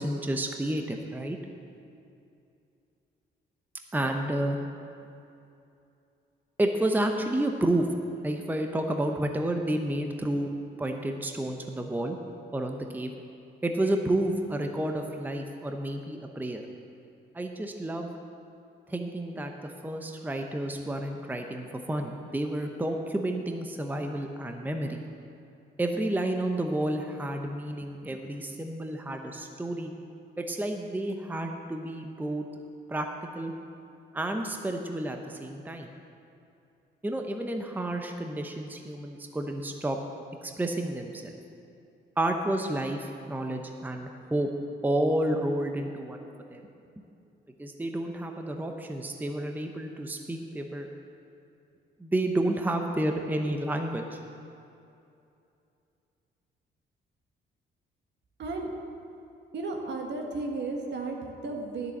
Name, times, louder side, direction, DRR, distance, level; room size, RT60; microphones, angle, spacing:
voice 1, 0.0-1.4 3.9-4.6 6.6-7.9 8.2-10.5 10.8-12.2 12.5-13.1 13.6-16.6 17.3-18.1 18.9-25.0 25.8-29.9 30.4-32.5 32.9-33.1 33.4-33.5 34.1-35.9 37.0-40.0 40.4-41.4 42.2-44.5 44.8-46.2 46.5-46.6 47.6-50.9 52.0-54.2, right 1 dB, 10° right, 4 dB, 0.8 m, -30 dB
voice 2, 58.4-58.7 59.5-61.9, right 3 dB, 60° right, 2 dB, 1.6 m, -34 dB
11.0 x 6.8 x 7.2 m, 2.7 s
cardioid pair, 90°, 20 cm